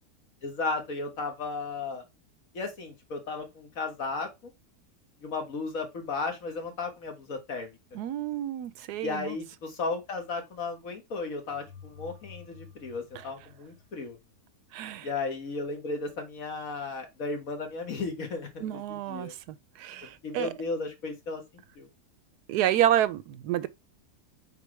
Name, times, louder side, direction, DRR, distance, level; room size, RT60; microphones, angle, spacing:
voice 1, 0.4-2.0 2.5-4.3 5.2-7.8 9.0-14.2 15.0-19.3 20.2-21.4 21.8-21.9, left 3 dB, 60° left, 1.9 m, -34 dB
voice 2, 7.9-9.4 13.1-13.3 14.7-15.1 18.6-20.5 22.5-23.7, right 12 dB, 85° right, 1.2 m, -29 dB
sound 1, 11.5-14.4, left 7 dB, 80° left, 2.3 m, -51 dB
8.2 x 4.1 x 3.3 m
omnidirectional pair, 1.7 m